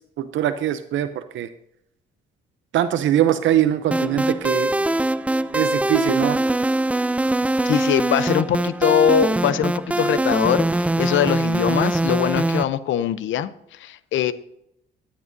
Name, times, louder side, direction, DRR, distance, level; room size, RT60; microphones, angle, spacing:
voice 1, 0.0-1.5 2.7-4.7 5.5-6.4, right 11 dB, 75° right, 10 dB, 0.6 m, -22 dB
sound 1, 3.9-12.6, right 1 dB, 5° right, 0.3 m, -22 dB
voice 2, 7.6-14.3, left 9 dB, 75° left, 15 dB, 0.6 m, -22 dB
12.0 x 9.8 x 2.7 m, 0.79 s
cardioid pair, 90°, 20 cm